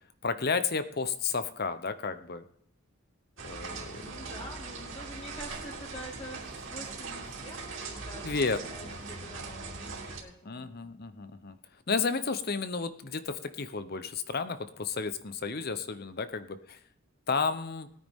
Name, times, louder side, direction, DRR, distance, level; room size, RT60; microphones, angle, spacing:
voice 1, 0.2-2.4 3.4-4.3 8.2-9.3 10.4-11.6 11.9-16.8 17.3-17.9, left 4 dB, 45° left, 11 dB, 0.8 m, -32 dB
sound 1, 3.4-10.2, right 4 dB, 65° right, 2.8 m, -41 dB
voice 2, 4.0-11.0, equal, 30° left, -5 dB, 5.1 m, -47 dB
19.5 x 9.5 x 3.7 m, 0.69 s
head